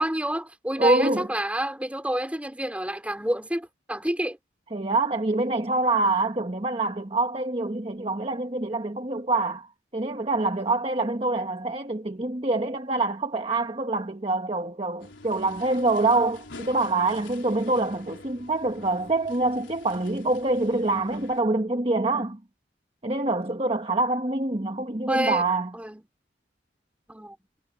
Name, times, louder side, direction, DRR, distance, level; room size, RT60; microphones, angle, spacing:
voice 1, 0.0-4.4 25.1-25.4 25.7-26.0 27.1-27.4, right 1 dB, 5° right, 4.0 m, -28 dB
voice 2, 0.8-1.3 4.7-22.4 23.0-25.7, right 2 dB, 30° right, 1.4 m, -25 dB
sound 1, 15.0-21.4, left 2 dB, 80° left, 3.9 m, -46 dB
head